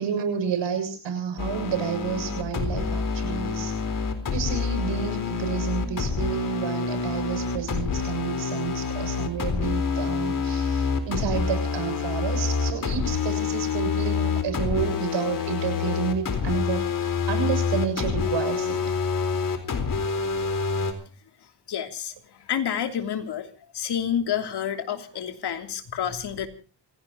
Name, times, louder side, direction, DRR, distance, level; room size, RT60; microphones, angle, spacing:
voice 1, 0.0-3.7 4.3-18.9, right 7 dB, 75° right, 7 dB, 7.2 m, -30 dB
sound 1, 1.4-20.9, left 5 dB, 50° left, 4.1 m, -27 dB
voice 2, 21.7-22.1 22.5-23.5 23.7-26.5, left 9 dB, 65° left, 5 dB, 3.1 m, -29 dB
28.0 x 17.0 x 2.9 m, 0.38 s
cardioid pair, 110°, 43 cm